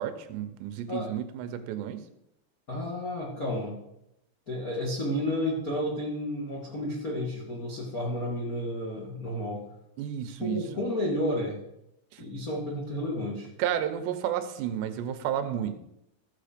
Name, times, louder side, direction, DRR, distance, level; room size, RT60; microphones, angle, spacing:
voice 1, 0.0-2.0 10.0-10.7 12.1-12.3 13.6-15.8, right 10 dB, 80° right, 10 dB, 3.0 m, -31 dB
voice 2, 2.7-3.7 4.5-9.6 10.4-11.6 12.2-13.5, left 1 dB, 80° left, -3 dB, 0.8 m, -31 dB
14.5 x 6.5 x 5.1 m, 0.83 s
omnidirectional pair, 4.9 m